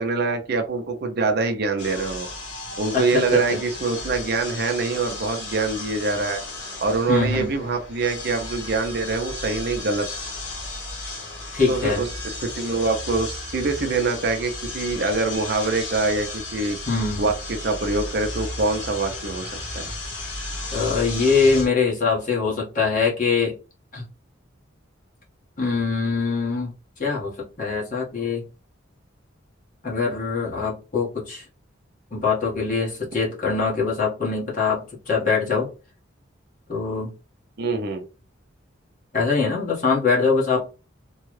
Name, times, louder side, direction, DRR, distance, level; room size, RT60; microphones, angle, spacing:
voice 1, 0.0-2.3 2.8-6.4 6.8-10.1 11.7-16.8 17.2-19.9 37.6-38.0, right 3 dB, 55° right, 5 dB, 0.6 m, -24 dB
sound 1, 1.8-21.7, left 2 dB, 65° left, 1.5 m, -34 dB
voice 2, 2.9-3.4 7.1-7.5 11.5-12.0 16.9-17.3 20.7-23.5 23.9-24.0 25.6-26.7 27.0-27.3 27.6-28.4 29.8-31.4 32.1-35.7 36.7-37.1 39.1-40.7, left 4 dB, 40° left, -5 dB, 1.5 m, -23 dB
3.5 x 2.3 x 3.2 m, 0.33 s
head